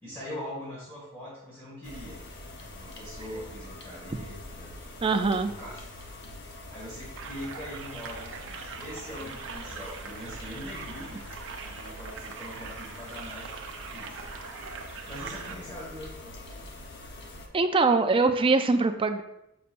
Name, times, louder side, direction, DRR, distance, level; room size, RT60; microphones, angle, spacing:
voice 1, 0.0-2.2 2.8-4.7 5.3-5.9 6.7-13.6 13.9-14.2 15.1-16.4, left 1 dB, 10° left, -8 dB, 1.7 m, -42 dB
sound 1, 1.8-17.5, left 1 dB, 55° left, 0.9 m, -44 dB
voice 2, 5.0-5.5 17.5-19.2, right 3 dB, 25° right, 7 dB, 0.4 m, -23 dB
sound 2, 7.2-15.5, right 6 dB, 60° right, 0.7 m, -42 dB
6.8 x 5.4 x 2.5 m, 0.84 s
head